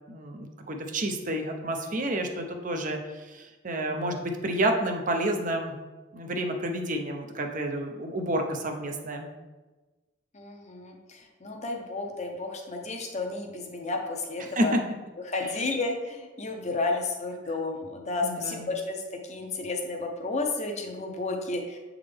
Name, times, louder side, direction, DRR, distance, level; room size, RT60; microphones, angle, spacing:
voice 1, 0.1-3.0 3.3-5.7 6.1-9.3 14.4-14.8 15.4-15.5 18.2-18.7, right 1 dB, 45° right, 4 dB, 0.7 m, -29 dB
voice 2, 10.3-14.7 15.3-19.0 19.3-21.8, left 3 dB, 35° left, 3 dB, 0.8 m, -32 dB
7.7 x 3.6 x 3.4 m, 1.2 s
head